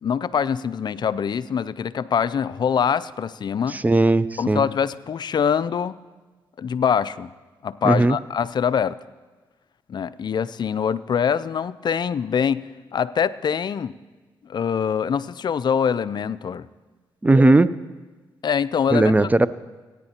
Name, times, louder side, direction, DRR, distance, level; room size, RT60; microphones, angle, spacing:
voice 1, 0.0-3.8 4.4-6.0 6.6-7.3 7.6-9.0 9.9-13.9 14.5-16.7 18.4-19.1, left 7 dB, 50° left, 16 dB, 0.4 m, -24 dB
voice 2, 3.7-4.6 7.8-8.2 17.2-17.7 18.9-19.5, right 2 dB, 15° right, 17 dB, 0.5 m, -17 dB
18.0 x 9.7 x 2.9 m, 1.3 s
supercardioid pair, 50°, 9 cm